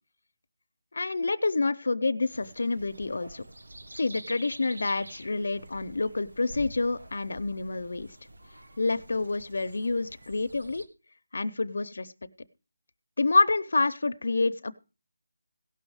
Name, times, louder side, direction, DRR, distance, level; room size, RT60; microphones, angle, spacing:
voice 1, 0.9-3.4 3.9-8.2 8.8-10.9 11.3-12.1 13.2-14.7, left 3 dB, 50° left, 13 dB, 0.6 m, -28 dB
sound 1, 2.3-10.9, right 1 dB, 75° right, 1.4 m, -47 dB
17.0 x 6.3 x 4.8 m, 0.32 s
figure-of-eight pair, 180°, 0 cm